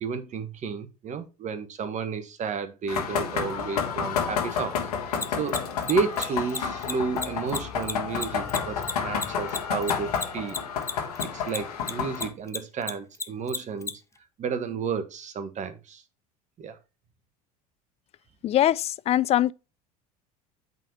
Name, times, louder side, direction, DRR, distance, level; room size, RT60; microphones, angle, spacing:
voice 1, 0.0-4.8 5.3-10.6 10.9-14.0 14.4-16.0 16.6-16.8, right 5 dB, 40° right, 1.2 m, -32 dB
sound 1, 2.9-12.3, left 7 dB, 85° left, 1.5 m, -30 dB
Mechanisms, 5.2-11.9 12.2-13.9, left 4 dB, 15° left, 0.7 m, -31 dB
voice 2, 18.4-19.5, left 12 dB, 35° left, 0.3 m, -22 dB
8.9 x 4.0 x 3.0 m
hypercardioid pair, 75°, 19 cm